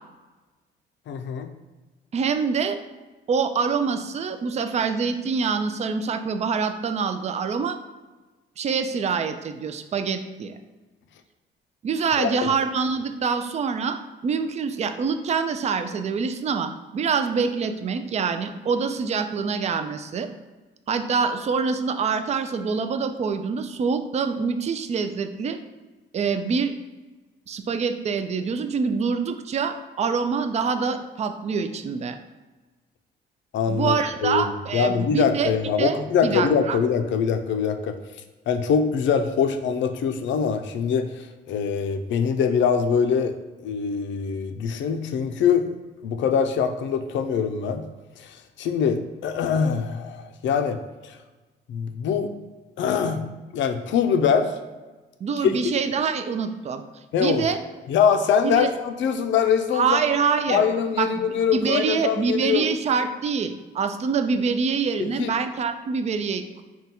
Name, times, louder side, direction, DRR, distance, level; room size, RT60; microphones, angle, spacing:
voice 1, 1.1-1.5 12.2-12.5 33.5-34.0 34.2-38.0 38.5-43.3 43.6-45.7 46.0-47.9 48.2-51.2 51.7-52.3 52.8-53.2 53.5-54.5 55.4-55.5 57.1-57.5 57.9-60.0 60.5-62.6 65.0-65.3, left 7 dB, 70° left, 7 dB, 0.5 m, -23 dB
voice 2, 2.1-2.8 3.3-7.8 8.6-10.6 11.8-20.3 20.9-25.6 26.1-26.7 27.5-32.2 33.7-35.5 35.8-36.8 55.2-56.8 57.2-57.6 58.4-58.7 59.7-60.6 61.0-66.6, right 5 dB, 35° right, 9 dB, 0.4 m, -25 dB
3.8 x 2.3 x 4.2 m, 1.2 s
cardioid pair, 90°, 20 cm